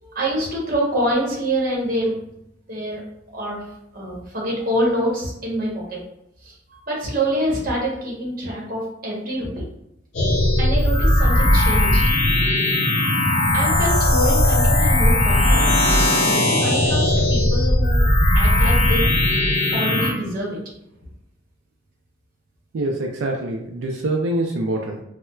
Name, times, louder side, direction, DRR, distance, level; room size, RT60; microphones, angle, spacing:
voice 1, 0.0-2.1 2.7-3.0 3.3-3.7 3.9-6.0 6.4-9.6 10.6-12.0 13.5-15.7 16.2-18.0 18.3-19.1 19.7-20.6, equal, 50° right, -3 dB, 1.0 m, -26 dB
sound 1, 10.1-20.1, left 1 dB, 75° left, 0.7 m, -18 dB
voice 2, 22.7-25.0, right 2 dB, 90° right, 0 dB, 0.4 m, -25 dB
4.2 x 2.1 x 2.3 m, 0.80 s
head